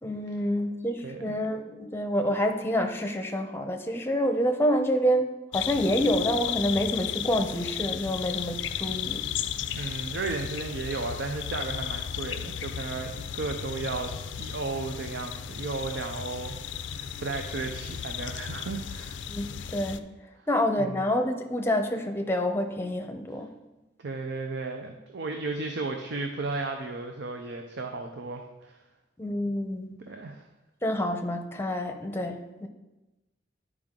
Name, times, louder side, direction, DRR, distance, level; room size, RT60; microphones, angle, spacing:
voice 1, 0.0-9.3 19.3-19.5 19.7-20.0 20.5-23.5 29.2-30.0 30.8-32.7, equal, 15° left, 5 dB, 0.7 m, -27 dB
voice 2, 1.0-1.4 9.7-16.6 16.9-19.2 20.4-20.5 20.8-21.0 24.0-28.8 30.1-30.4, right 3 dB, 65° right, 4 dB, 0.6 m, -34 dB
sound 1, 5.5-20.0, left 9 dB, 85° left, 0.4 m, -35 dB
10.5 x 4.8 x 3.8 m, 1.0 s
head